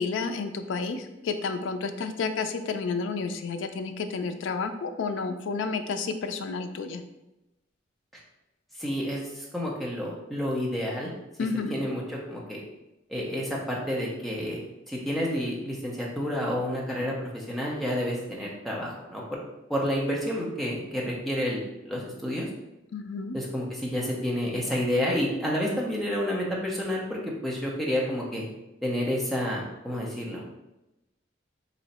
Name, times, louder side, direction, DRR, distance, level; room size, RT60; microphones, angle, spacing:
voice 1, 0.0-7.0 11.4-11.8 22.9-23.4, left 4 dB, 80° left, 8 dB, 0.4 m, -31 dB
voice 2, 8.8-11.1 11.7-12.6 13.1-14.6 14.9-19.4 19.7-22.5 23.3-28.4 28.8-30.4, equal, ahead, -4 dB, 0.7 m, -30 dB
3.1 x 2.7 x 4.1 m, 0.95 s
head